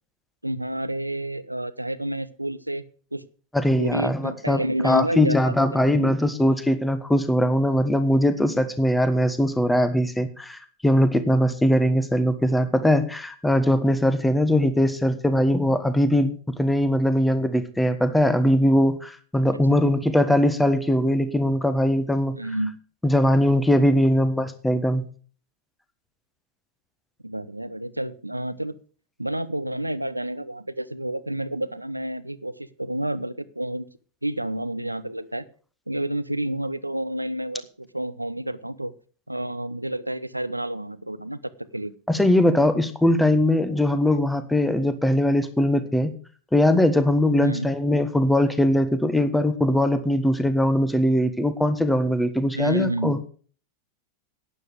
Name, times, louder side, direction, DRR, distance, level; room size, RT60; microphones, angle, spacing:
voice 1, 0.4-2.8 3.1-3.2 3.7-6.1 19.7-19.8 22.3-22.7 27.2-28.7 29.2-33.9 34.2-35.4 35.9-38.9 39.3-41.4 41.7-41.9 47.4-47.7 52.5-53.2, right 1 dB, 85° right, 16 dB, 0.7 m, -29 dB
voice 2, 3.5-22.4 23.0-25.0 42.1-46.1 46.5-53.2, left 1 dB, 5° left, 11 dB, 1.4 m, -21 dB
12.0 x 9.8 x 4.9 m, 0.41 s
figure-of-eight pair, 90°, 0 cm